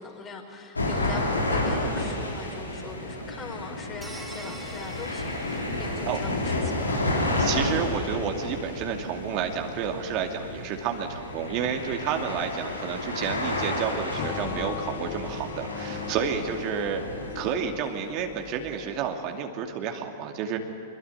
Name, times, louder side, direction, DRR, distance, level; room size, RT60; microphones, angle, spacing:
voice 1, 0.0-7.0, left 4 dB, 25° left, 2 dB, 5.4 m, -41 dB
sound 1, 0.8-17.5, left 2 dB, 85° left, 3.4 m, -31 dB
sound 2, 4.0-6.5, right 2 dB, 10° right, 4.4 m, -46 dB
voice 2, 7.4-17.0 17.3-20.6, right 7 dB, 45° right, 3 dB, 2.5 m, -30 dB
sound 3, 14.2-19.3, left 9 dB, 40° left, 2.4 m, -39 dB
25.0 x 22.5 x 9.8 m, 2.5 s
figure-of-eight pair, 100°, 0 cm